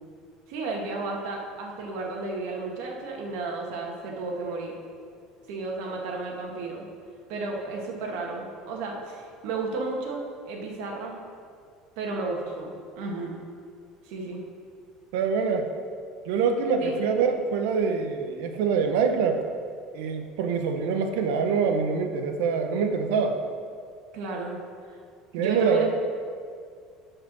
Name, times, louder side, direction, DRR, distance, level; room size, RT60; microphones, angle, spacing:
voice 1, 0.5-4.7 5.5-6.9 7.3-11.2 12.0-13.4 14.1-14.4 16.8-17.0 24.1-24.6 24.9-25.0 25.4-25.9, right 3 dB, 70° right, 0 dB, 1.9 m, -33 dB
voice 2, 15.1-15.7 16.3-19.4 19.9-23.4 25.3-25.9, right 5 dB, 90° right, 5 dB, 1.0 m, -25 dB
10.5 x 5.0 x 6.2 m, 2.2 s
cardioid pair, 160°, 0 cm